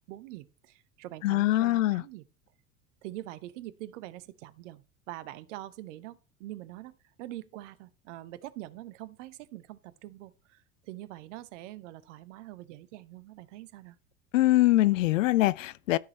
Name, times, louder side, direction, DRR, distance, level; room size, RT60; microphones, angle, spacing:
voice 1, 0.0-2.2 3.0-14.0, right 15 dB, 60° right, 1.0 m, -44 dB
voice 2, 1.2-2.0 14.3-16.0, left 17 dB, 65° left, 0.6 m, -23 dB
13.0 x 6.5 x 4.2 m
figure-of-eight pair, 75°, 42 cm